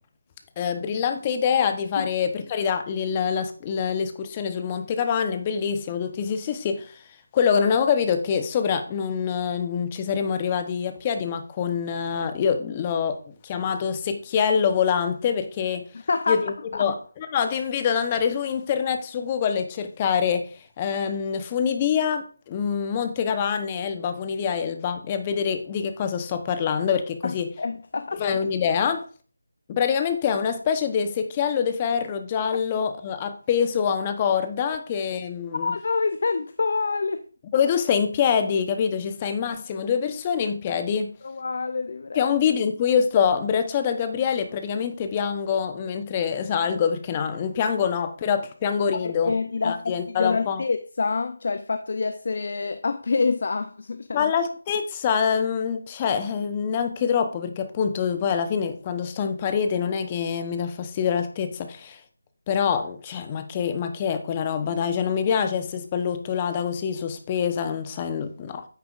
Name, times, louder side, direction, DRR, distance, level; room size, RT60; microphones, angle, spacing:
voice 1, 0.6-7.0 7.3-13.2 13.4-15.9 16.3-16.5 16.8-20.5 20.8-27.5 28.2-29.0 29.7-35.7 37.5-41.2 42.2-49.3 49.6-50.6 54.1-62.0 62.5-68.7, left 7 dB, 20° left, 0.9 m, -25 dB
voice 2, 15.9-16.5 16.7-16.9 27.2-28.2 35.5-37.2 41.2-42.3 48.9-54.3, left 4 dB, 50° left, 0.5 m, -27 dB
9.4 x 8.9 x 2.5 m
figure-of-eight pair, 160°, 0 cm